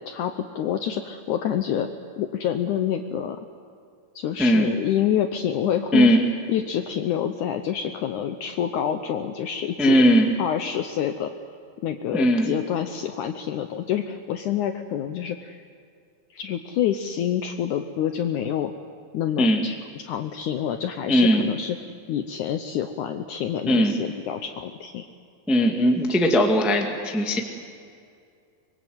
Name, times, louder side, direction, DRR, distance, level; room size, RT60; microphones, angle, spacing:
voice 1, 0.0-1.9 2.2-3.4 4.2-6.2 6.5-10.0 10.4-11.3 11.8-15.6 16.3-18.7 19.1-25.1, left 9 dB, 75° left, 7 dB, 1.9 m, -27 dB
voice 2, 9.8-10.3 12.1-12.5 19.4-19.6 21.1-21.4 23.6-24.0 25.5-27.4, equal, ahead, 2 dB, 0.8 m, -19 dB
24.5 x 22.5 x 7.9 m, 2.3 s
omnidirectional pair, 4.4 m